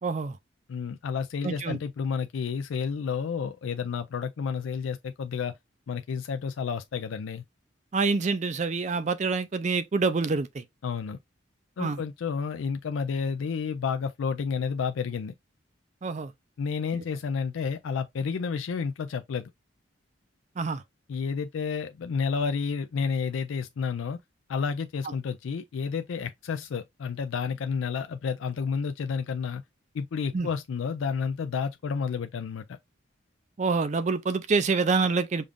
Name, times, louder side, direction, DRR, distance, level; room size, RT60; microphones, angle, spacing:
voice 1, 0.0-0.4 1.4-1.8 7.9-10.6 11.8-12.0 16.0-16.3 20.6-20.8 30.3-30.5 33.6-35.4, right 4 dB, 35° right, 0.4 m, -26 dB
voice 2, 0.7-5.5 5.9-7.4 10.8-11.2 11.8-15.3 16.6-19.5 21.1-24.2 24.5-29.6 29.9-32.8, left 6 dB, 75° left, 0.4 m, -30 dB
5.3 x 2.4 x 3.5 m
head